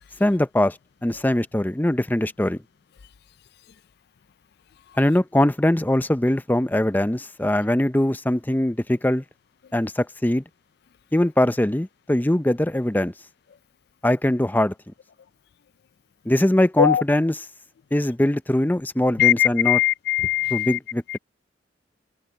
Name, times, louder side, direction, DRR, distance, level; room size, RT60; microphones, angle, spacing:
voice 1, 0.2-0.8 1.0-2.6 5.0-9.2 9.7-10.4 11.1-13.1 14.0-14.7 16.3-17.5 17.9-19.8 20.5-21.2, left 1 dB, 10° left, 0.5 m, -21 dB
voice 2, 19.2-20.8 21.1-21.2, left 11 dB, 60° left, 0.4 m, -20 dB
head